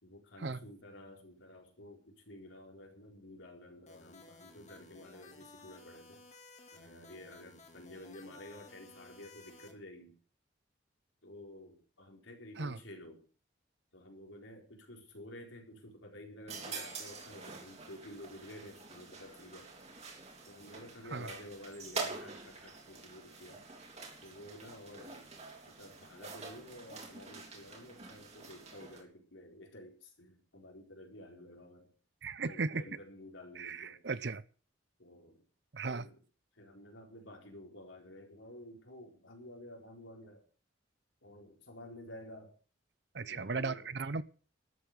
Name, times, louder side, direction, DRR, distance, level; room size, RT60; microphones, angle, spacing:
voice 1, 0.0-6.2 6.7-10.2 11.2-13.2 13.9-19.7 20.4-23.7 24.2-25.3 25.6-31.9 32.4-34.0 35.0-35.4 35.8-36.2 36.5-40.4 41.2-42.5 43.2-44.0, left 1 dB, 90° left, 4.3 m, -51 dB
sound 1, 3.9-9.7, left 3 dB, 35° left, 2.7 m, -56 dB
sound 2, 16.5-29.0, right 4 dB, 35° right, 3.6 m, -46 dB
voice 2, 32.2-32.8 33.6-34.4 35.7-36.1 43.1-44.2, right 4 dB, 60° right, 0.8 m, -36 dB
13.0 x 8.5 x 8.0 m
head